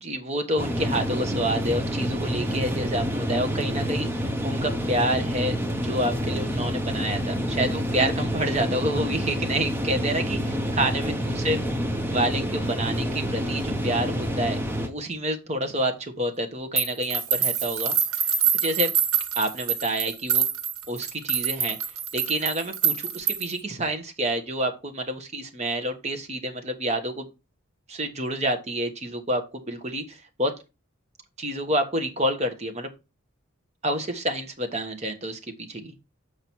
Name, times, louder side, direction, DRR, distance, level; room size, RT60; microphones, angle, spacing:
voice 1, 0.0-5.6 5.8-11.6 12.1-14.6 14.8-18.3 18.6-18.9 19.3-20.5 20.9-21.8 22.1-27.3 27.9-30.5 31.4-32.9 33.8-35.4 35.7-35.9, right 1 dB, 30° right, 6 dB, 1.1 m, -28 dB
sound 1, 0.6-14.9, equal, 10° right, 0.8 m, -28 dB
sound 2, 16.8-23.6, right 8 dB, 90° right, 1.3 m, -25 dB
7.2 x 4.8 x 4.5 m, 0.27 s
head